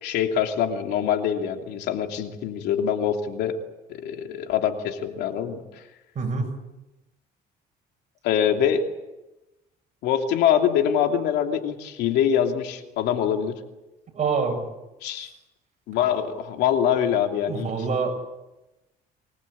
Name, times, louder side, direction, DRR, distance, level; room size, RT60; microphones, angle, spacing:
voice 1, 0.0-3.6 3.9-5.6 8.2-8.8 10.0-13.5 15.0-15.3 15.9-17.7, left 9 dB, 85° left, 4 dB, 2.9 m, -24 dB
voice 2, 6.1-6.5 14.1-14.6 17.5-18.1, right 5 dB, 45° right, 3 dB, 8.0 m, -25 dB
24.0 x 20.5 x 8.7 m, 1.0 s
cardioid pair, 110°, 17 cm